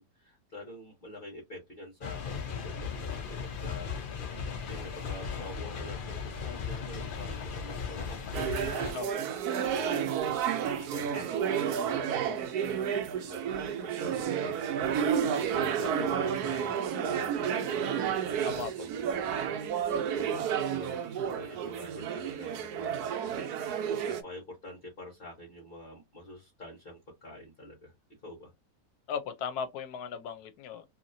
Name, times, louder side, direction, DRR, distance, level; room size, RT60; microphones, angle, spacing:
voice 1, 0.1-3.9 4.7-8.9 9.5-15.2 15.5-17.9 18.2-19.3 20.1-27.9 28.2-28.5, left 1 dB, 40° left, 1.3 m, -46 dB
sound 1, 2.0-8.9, left 6 dB, 55° left, 0.6 m, -37 dB
sound 2, 8.3-24.2, right 8 dB, 90° right, 1.2 m, -31 dB
voice 2, 29.1-30.8, left 6 dB, 80° left, 1.2 m, -36 dB
2.9 x 2.8 x 2.6 m
omnidirectional pair, 1.6 m